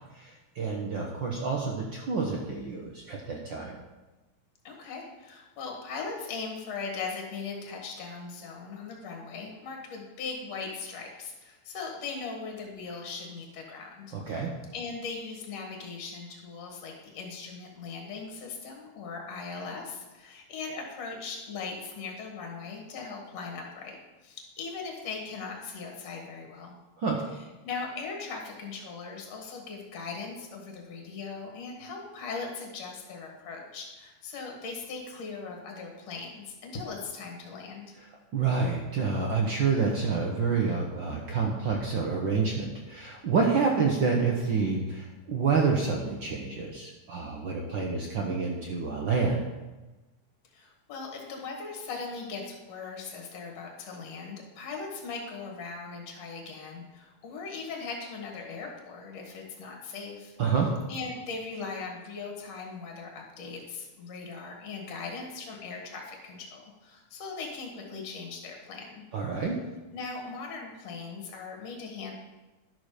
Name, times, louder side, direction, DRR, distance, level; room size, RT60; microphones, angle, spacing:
voice 1, 0.1-3.8 14.1-14.6 27.0-27.2 38.3-49.4 60.4-60.7 69.1-69.6, right 5 dB, 70° right, 0 dB, 1.1 m, -28 dB
voice 2, 4.6-14.4 14.7-24.0 24.2-26.8 27.6-37.9 50.5-60.4 60.9-69.0 69.9-72.1, left 4 dB, 60° left, 1 dB, 2.8 m, -39 dB
11.5 x 6.5 x 4.9 m, 1.2 s
omnidirectional pair, 3.4 m